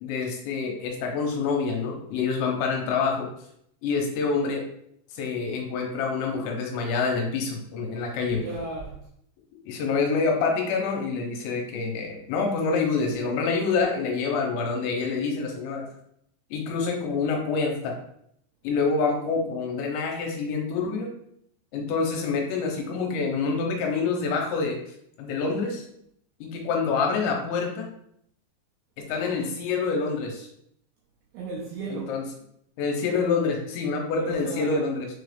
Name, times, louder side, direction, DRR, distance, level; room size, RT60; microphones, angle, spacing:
voice 1, 0.0-3.3 3.8-4.6 5.1-8.4 9.7-15.9 16.5-18.0 18.6-21.1 21.7-24.8 25.2-25.8 26.4-27.9 29.0-30.5 31.9-32.2 32.8-35.1, left 4 dB, 85° left, 3.0 m, -27 dB
voice 2, 8.2-9.0 31.3-32.2 34.1-34.9, right 3 dB, 80° right, 2.3 m, -35 dB
6.6 x 3.3 x 2.3 m
omnidirectional pair, 5.1 m